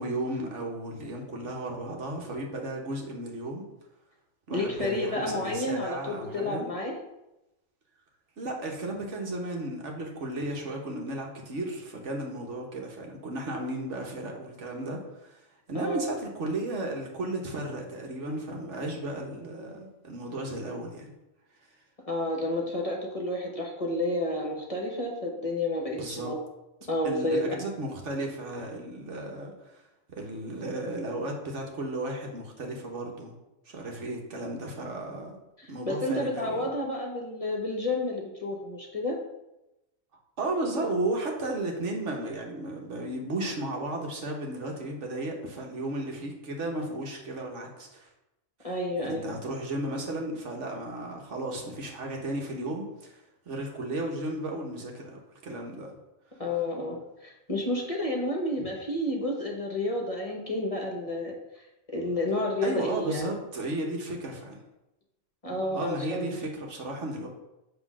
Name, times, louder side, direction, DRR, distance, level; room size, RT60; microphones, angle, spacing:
voice 1, 0.0-3.6 4.5-6.7 8.4-21.1 25.9-26.3 27.0-29.8 30.2-33.3 33.6-35.4 35.7-36.7 40.4-48.1 48.6-48.7 49.0-55.9 62.6-64.6 65.7-67.3, right 1 dB, 70° right, 0 dB, 1.5 m, -34 dB
voice 2, 4.5-6.9 15.7-16.0 22.0-26.4 26.9-27.5 35.6-39.2 48.6-49.2 56.4-61.3 61.9-63.2 65.4-66.3, left 1 dB, 30° left, -1 dB, 1.1 m, -30 dB
7.9 x 3.2 x 6.1 m, 0.94 s
omnidirectional pair, 1.3 m